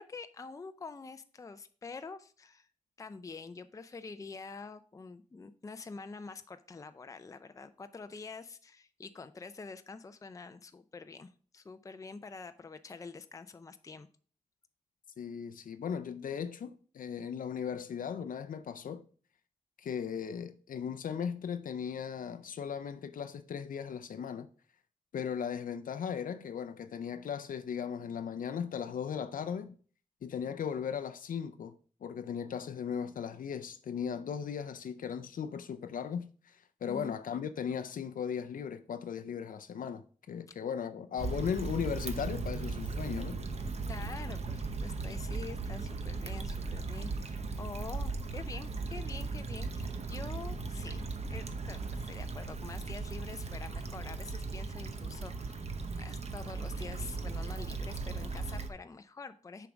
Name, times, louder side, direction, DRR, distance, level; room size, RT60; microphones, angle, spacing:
voice 1, 0.0-2.7 3.0-14.1 36.9-37.1 43.9-51.0 51.3-55.7 56.0-59.7, left 4 dB, 25° left, 0.4 m, -46 dB
voice 2, 15.2-19.0 19.8-24.5 25.1-29.8 30.2-31.7 32.0-43.4, left 7 dB, 80° left, 0.5 m, -37 dB
Stream / Traffic noise roadway noise / Trickle dribble, 41.2-58.7, right 3 dB, 50° right, 0.8 m, -37 dB
7.0 x 4.6 x 5.1 m
wide cardioid pair, 110°, 14 cm